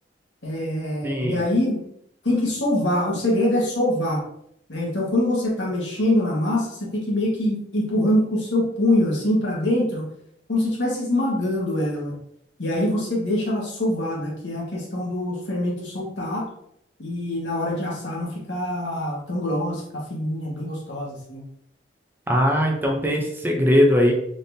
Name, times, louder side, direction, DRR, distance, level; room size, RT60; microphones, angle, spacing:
voice 1, 0.4-1.8 2.2-4.2 4.7-10.0 10.5-12.1 12.6-16.5 17.0-21.4, left 1 dB, 80° left, -3 dB, 1.4 m, -24 dB
voice 2, 1.0-1.4 22.3-24.1, equal, 10° right, 1 dB, 0.5 m, -20 dB
4.0 x 3.5 x 2.6 m, 0.72 s
head